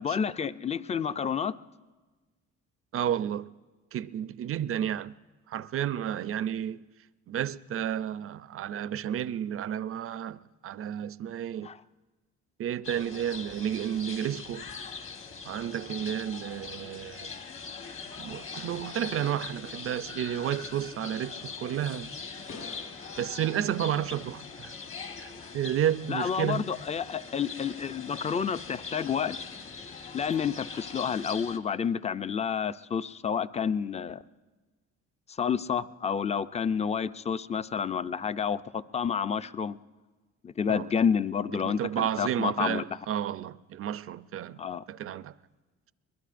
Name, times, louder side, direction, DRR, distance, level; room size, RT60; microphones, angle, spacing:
voice 1, 0.0-1.5 11.6-11.8 26.1-29.4 30.1-34.2 35.4-39.8 40.4-42.8 44.6-44.8, left 7 dB, 20° left, 0.4 m, -29 dB
voice 2, 2.9-3.5 3.9-5.1 5.5-6.9 7.3-11.7 12.6-14.7 15.5-17.3 18.2-22.1 23.2-24.7 25.2-26.7 40.7-40.9 41.6-44.6 44.9-45.3, right 10 dB, 50° right, 0.5 m, -31 dB
sound 1, 12.8-31.6, left 5 dB, 45° left, 1.3 m, -42 dB
Fireworks, 17.5-25.4, left 3 dB, 70° left, 5.2 m, -54 dB
23.0 x 20.5 x 2.5 m
cardioid pair, 90°, 30 cm